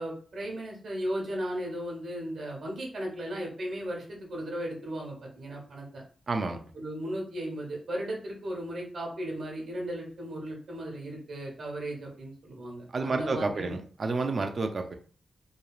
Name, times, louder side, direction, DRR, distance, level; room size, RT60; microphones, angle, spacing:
voice 1, 0.0-6.0 6.7-13.7, right 1 dB, 85° right, -2 dB, 1.0 m, -36 dB
voice 2, 6.3-6.6 12.9-14.9, right 3 dB, 50° right, 6 dB, 0.4 m, -30 dB
3.0 x 2.3 x 2.3 m, 0.42 s
wide cardioid pair, 95°, 0 cm